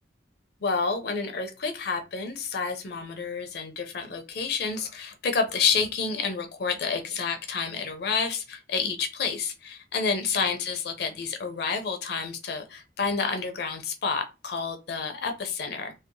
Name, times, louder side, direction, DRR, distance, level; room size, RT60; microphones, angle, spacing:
voice 1, 0.6-15.9, left 5 dB, 60° left, 6 dB, 0.5 m, -29 dB
2.7 x 2.0 x 2.5 m, 0.27 s
head